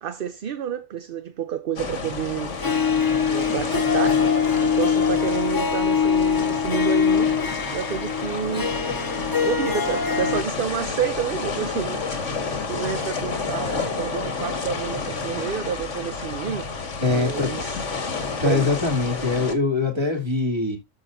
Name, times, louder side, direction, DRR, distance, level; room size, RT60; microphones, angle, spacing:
voice 1, 0.0-2.6 3.3-4.2 4.6-7.3 7.7-8.7 9.4-12.1 12.7-16.7 17.1-17.8 18.4-18.8, right 8 dB, 55° right, 0.8 m, -29 dB
sound 1, 1.8-19.5, left 4 dB, 75° left, 1.9 m, -30 dB
Harp, 2.6-10.4, left 6 dB, 25° left, 0.5 m, -23 dB
voice 2, 17.0-17.5 18.4-20.8, left 3 dB, 20° right, 2.9 m, -23 dB
13.0 x 5.4 x 2.6 m
omnidirectional pair, 1.3 m